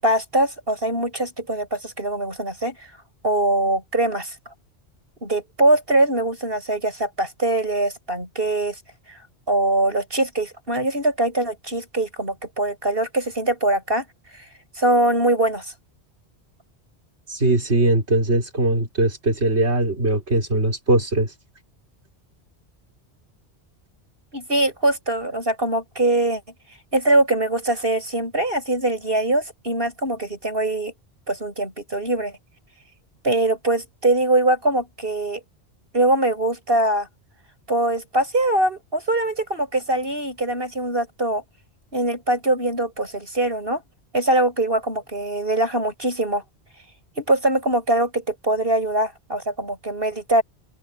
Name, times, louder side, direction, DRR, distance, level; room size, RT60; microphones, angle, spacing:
voice 1, 0.0-2.8 3.2-4.3 5.2-8.7 9.1-9.2 9.5-14.0 14.8-15.7 24.3-26.4 26.9-30.9 31.3-32.3 33.2-35.4 35.9-37.1 37.7-41.4 41.9-43.8 44.1-46.4 47.2-50.4, right 2 dB, 60° right, 8.4 m, -22 dB
voice 2, 17.3-21.3, right 2 dB, 85° right, 4.0 m, -20 dB
open air
omnidirectional pair, 1.1 m